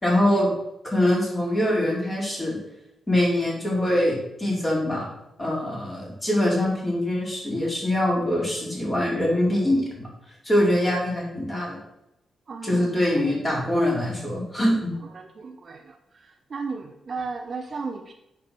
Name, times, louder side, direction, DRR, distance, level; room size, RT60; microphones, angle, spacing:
voice 1, 0.0-0.5 0.8-2.6 3.1-5.1 5.4-10.1 10.4-11.8 12.6-14.9, left 1 dB, 20° left, -4 dB, 4.0 m, -23 dB
voice 2, 12.5-12.9 13.5-13.6 15.1-16.0 16.2-18.1, right 4 dB, 40° right, 5 dB, 0.9 m, -34 dB
8.5 x 5.9 x 6.8 m, 0.86 s
wide cardioid pair, 145°, 0 cm